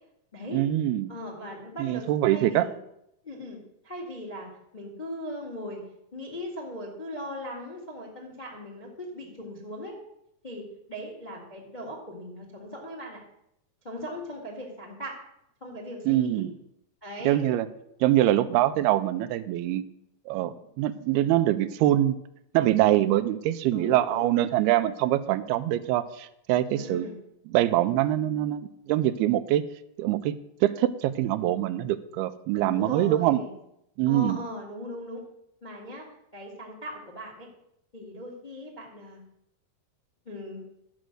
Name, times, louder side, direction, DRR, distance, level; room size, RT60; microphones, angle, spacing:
voice 1, 0.5-1.1 1.8-2.7 16.1-16.5 17.2-17.7 18.0-19.8 20.3-22.2 22.5-27.1 27.5-29.6 30.0-30.3 30.6-33.4 34.0-34.4, right 13 dB, 85° right, 12 dB, 2.5 m, -24 dB
voice 2, 1.1-2.7 3.2-5.8 6.1-10.0 10.4-13.2 13.8-15.2 15.6-16.4 17.0-17.4 23.7-24.6 26.7-27.2 32.5-33.5 34.0-35.2 35.6-36.0 36.3-37.5 37.9-39.2 40.2-40.6, left 1 dB, 25° left, 0 dB, 0.9 m, -39 dB
11.5 x 6.3 x 7.8 m, 0.79 s
omnidirectional pair, 4.5 m